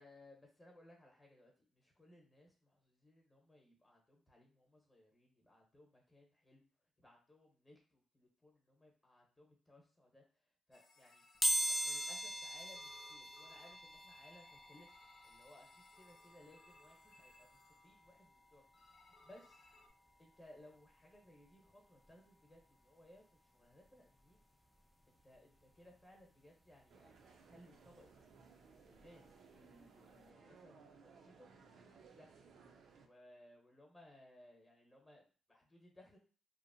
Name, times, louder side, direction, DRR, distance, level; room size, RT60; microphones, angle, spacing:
voice 1, 0.0-6.7 7.0-10.2 10.7-11.2 11.7-15.0 15.2-18.7 19.0-19.6 20.2-23.2 23.5-24.4 25.1-28.1 28.9-32.4 33.0-36.2, left 1 dB, 20° left, -1 dB, 1.0 m, -63 dB
sound 1, 10.7-12.5 12.7-18.3 18.7-19.9, left 2 dB, 50° left, 0.6 m, -66 dB
sound 2, 11.4-22.1 22.6-22.7 23.8-23.9 24.2-26.3 26.6-29.3 29.6-29.8 30.1-30.2, equal, 5° left, 0.3 m, -43 dB
sound 3, 26.9-33.1, right 5 dB, 65° right, 0.5 m, -62 dB
2.8 x 2.1 x 2.6 m, 0.38 s
cardioid pair, 90°, 0 cm